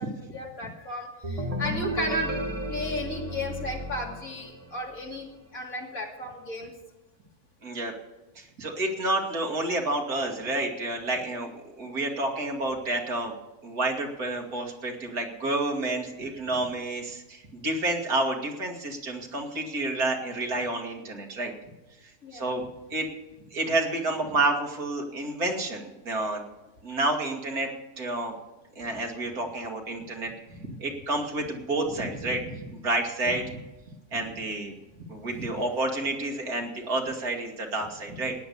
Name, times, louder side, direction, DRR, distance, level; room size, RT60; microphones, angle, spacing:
voice 1, 0.0-2.3 2.7-5.3 5.5-6.7 22.2-22.5, left 1 dB, 60° left, -1 dB, 3.1 m, -34 dB
sound 1, 1.2-4.9, equal, 25° right, 1.7 m, -33 dB
voice 2, 7.6-7.9 8.4-11.5 11.8-13.3 13.6-21.5 22.0-23.1 23.5-26.5 26.8-27.7 28.0-28.3 28.8-33.6 34.1-34.7 35.1-38.4, right 2 dB, 70° right, 1 dB, 2.6 m, -29 dB
16.0 x 10.0 x 6.9 m, 1.1 s
omnidirectional pair, 1.7 m